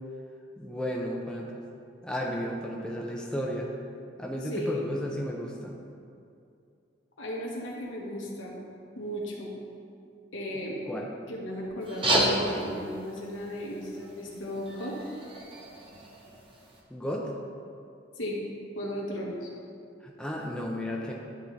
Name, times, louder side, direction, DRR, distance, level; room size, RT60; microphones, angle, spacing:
voice 1, 0.6-1.6 2.0-3.7 4.2-5.8 10.9-11.1 16.9-17.3 20.0-21.1, equal, 5° left, -2 dB, 0.4 m, -33 dB
voice 2, 4.5-4.9 7.2-8.5 8.9-9.5 10.3-10.8 11.3-15.0 18.1-18.4 18.7-19.5, equal, 80° left, -3 dB, 1.2 m, -35 dB
sound 1, 11.8-16.8, right 1 dB, 30° right, 0.8 m, -32 dB
10.5 x 3.8 x 3.2 m, 2.5 s
head